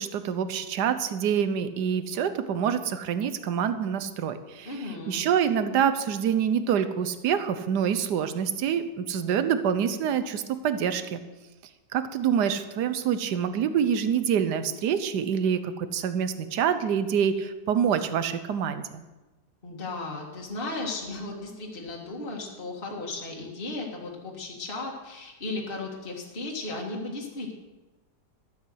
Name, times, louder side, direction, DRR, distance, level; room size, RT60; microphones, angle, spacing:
voice 1, 0.0-4.7 5.0-11.2 11.9-19.0, right 8 dB, 80° right, 10 dB, 1.4 m, -26 dB
voice 2, 4.6-5.2 19.6-27.5, left 2 dB, 30° left, -1 dB, 2.1 m, -35 dB
13.0 x 7.9 x 7.9 m, 1.1 s
omnidirectional pair, 1.8 m